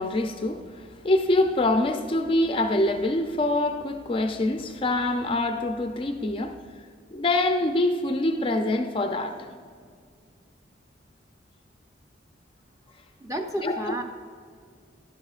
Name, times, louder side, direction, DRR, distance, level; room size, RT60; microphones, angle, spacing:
voice 1, 0.0-6.5 7.1-9.5 13.6-13.9, left 2 dB, 30° left, 0.4 m, -25 dB
voice 2, 13.2-14.0, equal, 20° right, 0.7 m, -31 dB
12.0 x 10.5 x 2.4 m
head